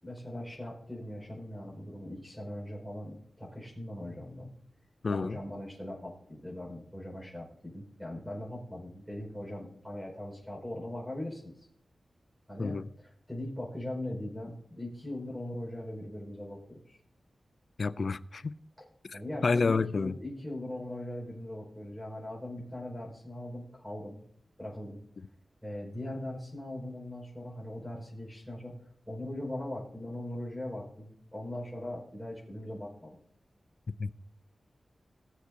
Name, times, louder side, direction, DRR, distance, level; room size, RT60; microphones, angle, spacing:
voice 1, 0.0-4.5 5.1-11.7 12.5-12.8 13.3-17.0 19.1-24.2 24.6-25.0 25.6-28.7 29.1-33.2, left 1 dB, 5° right, 5.3 m, -40 dB
voice 2, 5.0-5.4 12.6-12.8 17.8-18.5 19.1-20.1 34.0-34.1, left 4 dB, 55° left, 0.4 m, -29 dB
20.5 x 8.0 x 2.8 m
wide cardioid pair, 135°, 0 cm